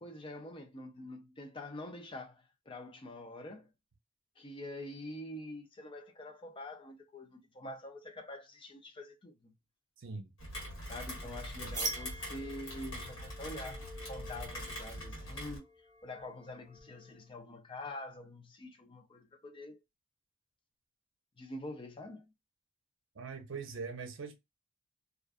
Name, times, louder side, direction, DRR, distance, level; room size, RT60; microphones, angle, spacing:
voice 1, 0.0-3.7 4.4-9.5 10.8-15.7 16.0-19.8 21.4-22.2, left 1 dB, 25° left, 0.4 m, -46 dB
voice 2, 10.0-10.3 11.6-11.7 23.2-24.4, right 4 dB, 65° right, 0.6 m, -42 dB
Rain, 10.4-15.6, equal, 70° left, 1.3 m, -43 dB
sound 1, 11.7-17.3, right 3 dB, 20° right, 0.9 m, -45 dB
2.4 x 2.3 x 2.4 m
head